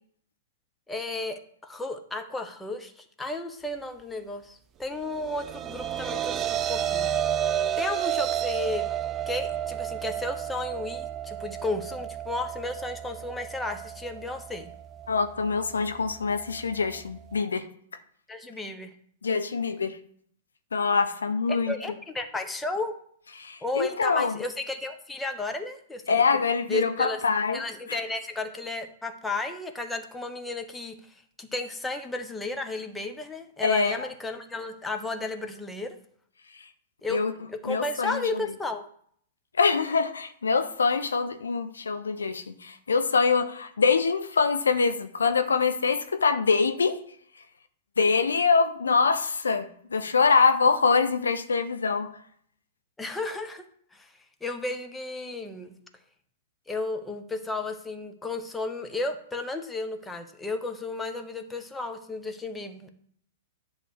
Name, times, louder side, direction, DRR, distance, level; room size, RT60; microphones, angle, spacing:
voice 1, 0.9-6.4 6.7-7.1 7.8-8.9 9.3-14.7 18.3-18.9 21.5-23.0 23.6-26.2 26.7-27.2 27.5-30.9 31.4-36.0 37.0-38.9 53.0-53.7 53.9-54.1 54.4-55.7 56.7-62.9, left 2 dB, 10° left, 1.0 m, -33 dB
sound 1, 5.1-17.4, right 10 dB, 25° right, 0.4 m, -32 dB
voice 2, 15.1-17.7 19.2-20.0 20.7-21.7 23.4-24.4 26.1-27.6 27.9-28.0 33.6-34.1 37.1-37.3 37.6-38.2 39.6-47.0 48.0-52.1, left 5 dB, 75° left, 0.7 m, -24 dB
10.0 x 3.4 x 6.4 m
figure-of-eight pair, 105°, 0 cm